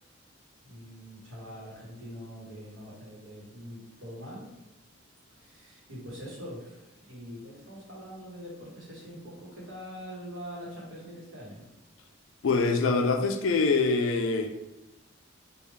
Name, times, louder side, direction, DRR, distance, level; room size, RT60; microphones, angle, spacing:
voice 1, 0.6-4.5 5.3-11.6, equal, 65° right, -5 dB, 1.2 m, -43 dB
voice 2, 12.4-14.5, left 3 dB, 65° left, 5 dB, 0.4 m, -24 dB
3.4 x 2.4 x 3.2 m, 0.95 s
head